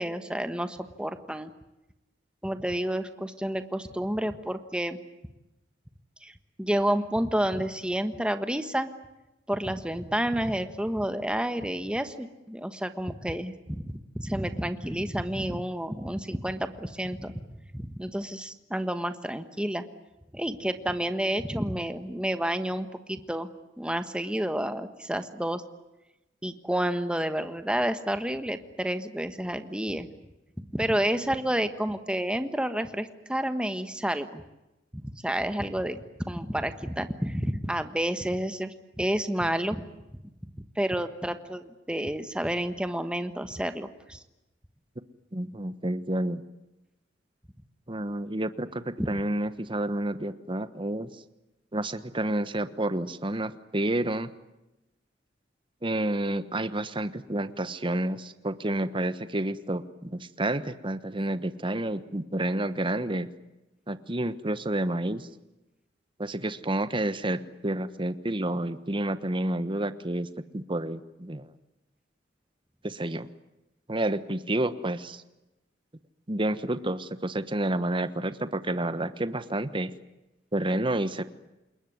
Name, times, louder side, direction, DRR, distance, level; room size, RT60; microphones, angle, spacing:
voice 1, 0.0-1.5 2.4-5.0 6.2-8.9 9.5-17.4 17.7-19.8 20.3-23.5 23.8-25.6 26.4-30.1 30.7-34.4 34.9-39.8 40.4-44.2 49.0-49.1, right 1 dB, 5° right, 9 dB, 1.4 m, -30 dB
voice 2, 45.3-46.4 47.9-51.1 51.7-54.3 55.8-63.3 63.9-65.3 66.2-71.5 72.8-73.3 73.9-75.2 76.3-79.9 80.5-81.2, right 1 dB, 30° right, 12 dB, 1.2 m, -29 dB
28.0 x 21.5 x 9.6 m, 0.96 s
head